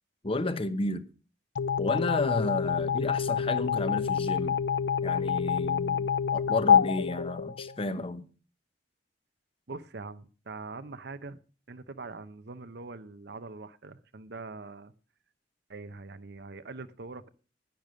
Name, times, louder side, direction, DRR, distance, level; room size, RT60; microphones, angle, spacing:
voice 1, 0.2-1.1 1.8-4.6 5.0-8.2, left 2 dB, 30° left, 1.0 m, -32 dB
sound 1, 1.6-8.0, left 7 dB, 75° left, 0.5 m, -27 dB
voice 2, 9.7-11.4 11.7-14.9 15.7-17.3, right 3 dB, 60° right, 0.8 m, -43 dB
11.0 x 10.5 x 6.3 m
head